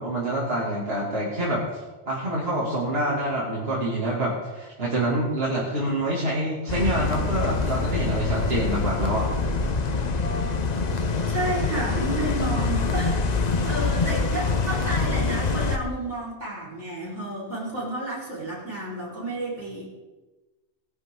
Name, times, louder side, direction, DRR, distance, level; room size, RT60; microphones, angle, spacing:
voice 1, 0.0-9.3, right 1 dB, 60° right, -6 dB, 2.9 m, -26 dB
sound 1, 6.7-15.8, left 4 dB, 40° left, 0.9 m, -25 dB
voice 2, 11.3-19.9, right 1 dB, 80° right, -7 dB, 5.3 m, -31 dB
19.5 x 11.0 x 3.9 m, 1.2 s
omnidirectional pair, 1.2 m